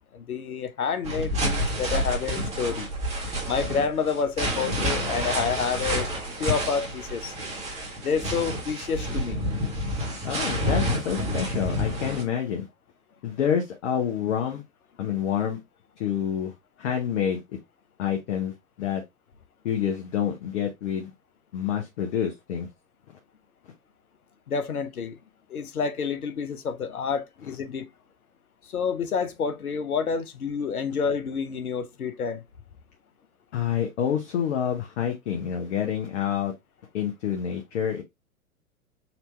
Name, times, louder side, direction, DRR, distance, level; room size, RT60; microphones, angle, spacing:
voice 1, 0.1-2.9 3.4-6.1 6.4-7.3 8.0-9.4 24.5-25.2 25.5-27.9 28.6-32.4, left 6 dB, 80° left, 0.8 m, -29 dB
sound 1, 1.0-12.2, equal, 15° right, 1.4 m, -29 dB
voice 2, 10.2-12.7 13.2-14.6 15.0-15.6 16.0-16.5 16.8-17.4 18.0-19.0 19.6-21.1 21.5-22.7 33.5-36.5 36.9-38.0, left 9 dB, 55° left, 1.0 m, -28 dB
4.3 x 2.7 x 3.2 m
figure-of-eight pair, 110°, 43 cm